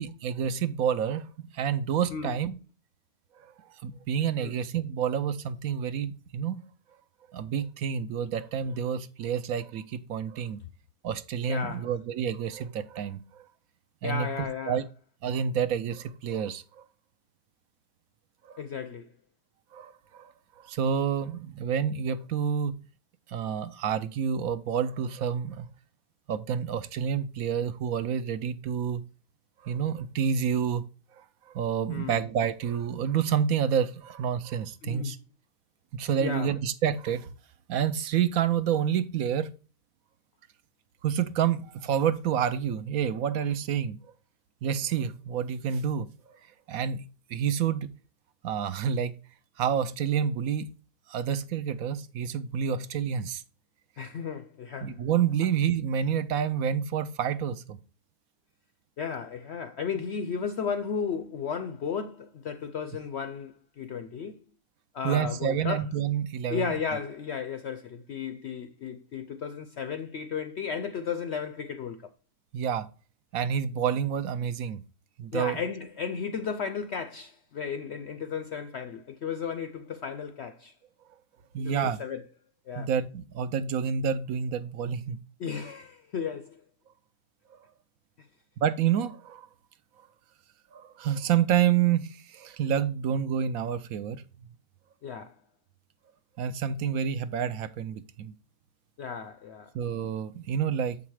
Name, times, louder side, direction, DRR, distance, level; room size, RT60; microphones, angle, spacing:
voice 1, 0.0-2.6 3.4-3.5 3.8-6.6 7.3-10.6 11.0-13.4 14.0-14.3 14.7-14.8 15.2-16.8 18.5-18.6 19.7-22.8 23.3-25.7 26.3-29.0 29.6-30.9 31.2-35.2 35.9-37.3 37.7-39.5 41.0-44.0 44.6-46.1 46.7-47.9 48.4-49.2 49.6-50.7 51.1-53.4 54.8-57.8 65.0-66.8 72.5-72.9 73.3-74.8 75.2-75.6 81.5-82.0 82.8-85.2 88.6-89.5 90.7-94.2 96.4-98.3 99.7-101.0, right 8 dB, 70° right, 1.0 m, -28 dB
voice 2, 11.5-11.9 14.0-14.8 18.6-19.1 31.9-32.2 34.8-35.2 36.2-36.5 54.0-55.0 59.0-64.4 64.9-65.8 66.5-72.1 75.3-80.7 81.6-82.2 82.7-82.9 85.4-86.6 88.2-88.3 95.0-95.4 99.0-99.7, left 6 dB, 70° left, 0.6 m, -34 dB
7.3 x 5.0 x 4.6 m
omnidirectional pair, 1.7 m